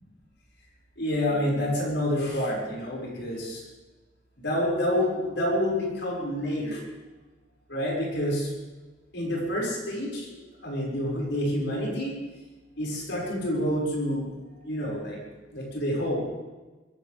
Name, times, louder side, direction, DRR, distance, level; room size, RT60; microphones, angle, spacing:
voice 1, 1.0-3.6 4.4-6.8 7.7-8.5 9.1-10.2 10.6-12.1 12.8-14.3 14.7-15.2 15.5-16.2, left 1 dB, 65° left, -4 dB, 6.2 m, -28 dB
22.0 x 16.0 x 3.6 m, 1.2 s
head